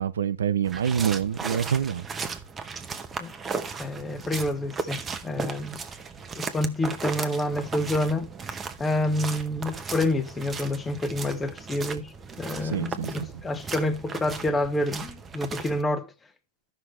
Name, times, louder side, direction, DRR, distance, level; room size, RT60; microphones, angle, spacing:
voice 1, 0.0-2.0 12.6-13.3, right 8 dB, 90° right, 0.8 m, -26 dB
sound 1, 0.6-15.8, right 5 dB, 15° right, 0.8 m, -36 dB
voice 2, 3.8-5.8 6.4-8.3 8.8-16.1, left 1 dB, 10° left, 1.0 m, -28 dB
13.0 x 5.8 x 3.2 m
hypercardioid pair, 140°, 0 cm